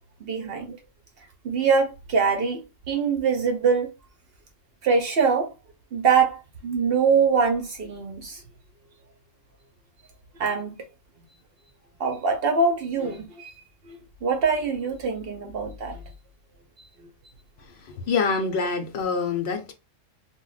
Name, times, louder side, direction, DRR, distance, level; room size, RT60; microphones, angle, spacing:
voice 1, 0.2-0.8 1.4-2.6 2.9-3.9 4.8-5.5 5.9-8.4 10.4-10.7 12.0-13.5 14.2-16.0, right 5 dB, 60° right, 0.7 m, -23 dB
voice 2, 17.7-19.7, left 5 dB, 65° left, 0.8 m, -26 dB
2.2 x 2.0 x 3.8 m
omnidirectional pair, 1.3 m